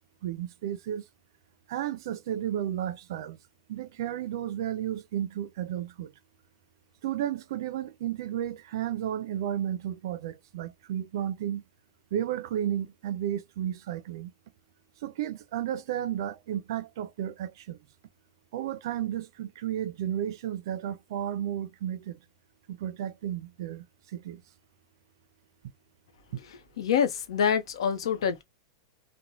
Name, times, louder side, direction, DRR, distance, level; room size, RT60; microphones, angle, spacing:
voice 1, 0.2-1.0 1.7-3.4 3.7-6.1 7.0-11.6 12.1-14.3 15.0-17.8 18.5-22.2 22.7-23.8 24.1-24.4, right 11 dB, 50° right, 0.4 m, -33 dB
voice 2, 26.8-28.4, left 7 dB, 85° left, 0.8 m, -26 dB
3.0 x 2.1 x 2.6 m
supercardioid pair, 180°, 3 cm